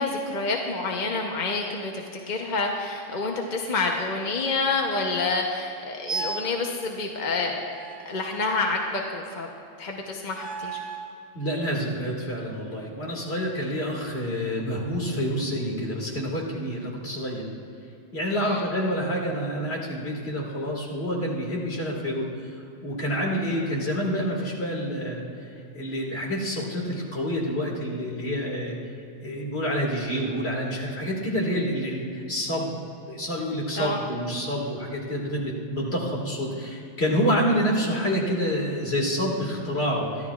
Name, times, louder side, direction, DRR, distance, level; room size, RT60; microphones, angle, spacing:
voice 1, 0.0-7.6 8.1-9.5 9.8-10.8 18.4-18.6 33.8-34.0, left 3 dB, 45° left, 1 dB, 0.9 m, -28 dB
sound 1, 6.1-6.6 7.7-9.0 10.3-11.2, right 4 dB, 70° right, 1.4 m, -35 dB
voice 2, 11.3-17.5 18.1-22.3 22.8-25.5 25.8-28.8 29.2-32.7 33.1-40.3, equal, 65° left, -2 dB, 2.3 m, -28 dB
23.0 x 13.0 x 2.4 m, 2.6 s
omnidirectional pair, 1.2 m